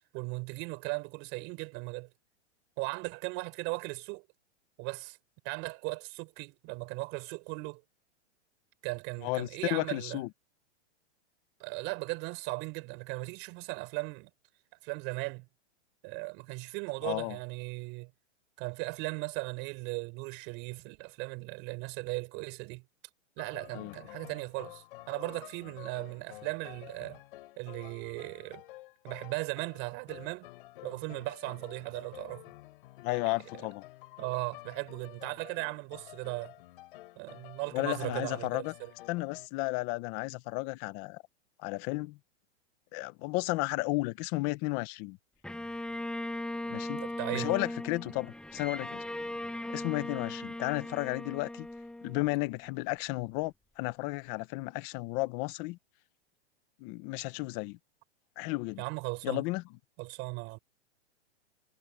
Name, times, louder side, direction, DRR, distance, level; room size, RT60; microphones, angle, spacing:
voice 1, 0.1-2.1 2.8-4.2 4.8-5.2 5.4-7.8 8.8-10.2 11.6-14.3 14.8-15.5 16.0-18.1 18.6-22.8 23.4-27.2 27.6-28.6 29.0-30.5 30.8-32.4 34.2-36.5 37.2-38.9 46.9-47.6 58.8-59.4 60.0-60.6, right 27 dB, 35° right, 5.4 m, -37 dB
voice 2, 9.2-10.3 17.0-17.4 23.7-23.9 33.0-33.8 37.7-38.7 39.1-41.2 41.6-42.2 42.9-45.2 46.7-47.0 47.3-49.0 49.7-51.7 52.0-55.8 56.8-57.8 58.4-58.8 59.2-59.6, left 22 dB, 20° left, 0.6 m, -33 dB
sound 1, 23.4-39.5, left 18 dB, 50° left, 6.6 m, -51 dB
Bowed string instrument, 45.4-52.7, left 1 dB, ahead, 6.8 m, -38 dB
hypercardioid pair, 160°, 35 cm